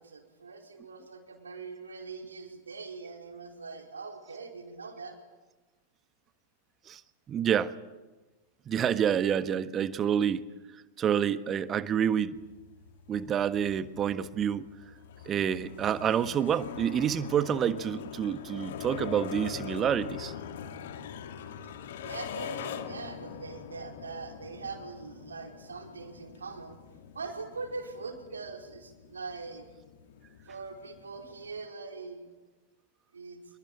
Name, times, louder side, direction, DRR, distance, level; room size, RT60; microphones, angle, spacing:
voice 1, 0.0-5.2 21.6-21.7 22.0-26.8 27.1-29.7 30.5-32.2 33.1-33.4, right 4 dB, 75° right, 3 dB, 4.9 m, -42 dB
voice 2, 7.3-7.7 8.7-10.4 11.0-12.4 13.1-14.7 15.2-20.3, right 8 dB, 25° right, 13 dB, 1.4 m, -28 dB
sound 1, 12.3-31.7, left 8 dB, 55° left, 2.3 m, -43 dB
27.0 x 23.0 x 8.9 m, 1.2 s
figure-of-eight pair, 90°, 0 cm